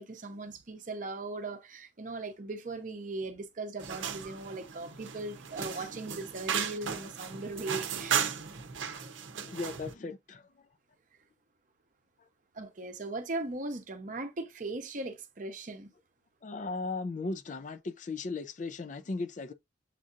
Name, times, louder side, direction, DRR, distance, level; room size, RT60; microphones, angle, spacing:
voice 1, 0.0-8.2 12.5-15.9, right 2 dB, 45° right, 0.7 m, -39 dB
sound 1, 3.8-9.9, right 7 dB, 90° right, 0.7 m, -35 dB
voice 2, 9.0-10.7 16.4-19.5, left 3 dB, 40° left, 0.4 m, -37 dB
7.4 x 2.7 x 2.4 m
head